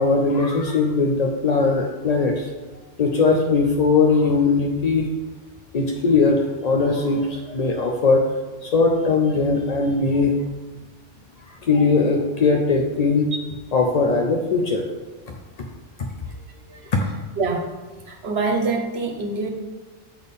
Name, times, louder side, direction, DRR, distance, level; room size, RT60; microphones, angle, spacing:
voice 1, 0.0-2.5 3.0-5.1 5.7-8.2 8.6-10.4 11.5-13.3 13.7-14.9 15.6-15.7 16.0-16.1 16.9-17.0, left 4 dB, 55° left, 2 dB, 0.4 m, -20 dB
voice 2, 16.2-16.9 17.4-17.7 18.1-19.5, right 3 dB, 60° right, 2 dB, 1.0 m, -26 dB
7.7 x 4.2 x 3.5 m, 1.3 s
omnidirectional pair, 1.2 m